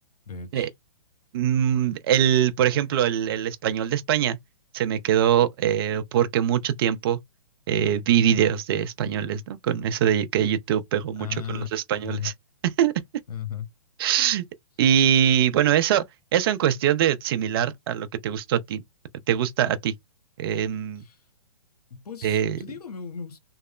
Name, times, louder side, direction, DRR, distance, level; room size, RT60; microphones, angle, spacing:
voice 1, 0.3-0.7 11.2-11.7 12.0-12.3 13.3-13.7 21.0-21.2 21.9-23.4, left 8 dB, 80° left, 0.8 m, -35 dB
voice 2, 1.3-4.4 4.7-7.2 7.7-12.3 12.8-12.9 14.0-14.4 14.8-16.0 16.3-18.8 19.3-19.9 20.4-21.0 22.2-22.6, right 10 dB, 40° right, 0.4 m, -23 dB
2.9 x 2.0 x 2.3 m
hypercardioid pair, 135°, 19 cm